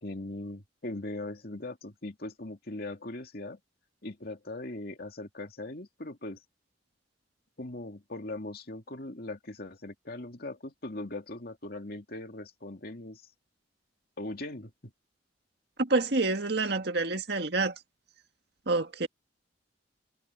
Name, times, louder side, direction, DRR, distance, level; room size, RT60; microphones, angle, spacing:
voice 1, 0.0-3.6 4.0-6.4 7.6-13.2 14.2-14.9, left 2 dB, 55° left, 2.4 m, -40 dB
voice 2, 15.8-17.7 18.7-19.1, right 3 dB, 60° right, 1.9 m, -27 dB
head